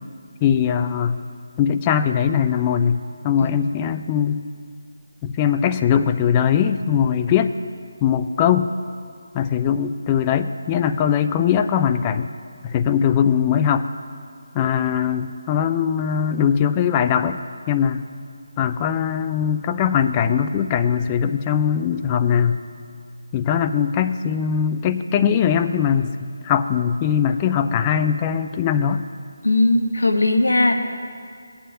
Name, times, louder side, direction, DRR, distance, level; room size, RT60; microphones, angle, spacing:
voice 1, 0.4-1.2 1.6-4.4 5.2-7.5 8.0-8.7 9.3-12.3 12.6-13.9 14.5-17.4 17.7-18.1 18.6-22.6 23.3-26.1 26.4-29.1, left 8 dB, 20° left, 9 dB, 0.3 m, -20 dB
voice 2, 29.4-30.7, left 2 dB, 75° left, 5 dB, 0.9 m, -18 dB
17.5 x 9.0 x 2.7 m, 2.3 s
figure-of-eight pair, 155°, 0 cm